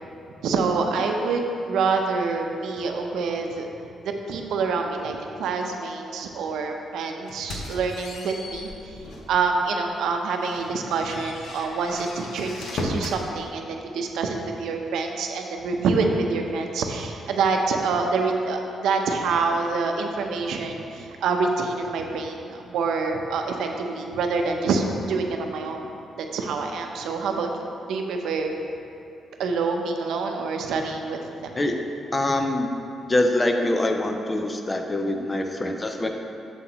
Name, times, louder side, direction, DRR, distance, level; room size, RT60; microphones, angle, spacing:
voice 1, 0.4-3.7 4.0-8.9 9.3-25.9 26.2-28.5 29.4-31.5, right 4 dB, 85° right, 3 dB, 0.6 m, -26 dB
sound 1, 7.3-9.4 9.8-10.0 10.4-13.2, left 2 dB, 65° left, 0.8 m, -36 dB
voice 2, 32.1-32.7 33.1-36.1, left 1 dB, 15° left, 4 dB, 0.4 m, -24 dB
7.3 x 7.0 x 3.0 m, 2.7 s
cardioid pair, 170°, 0 cm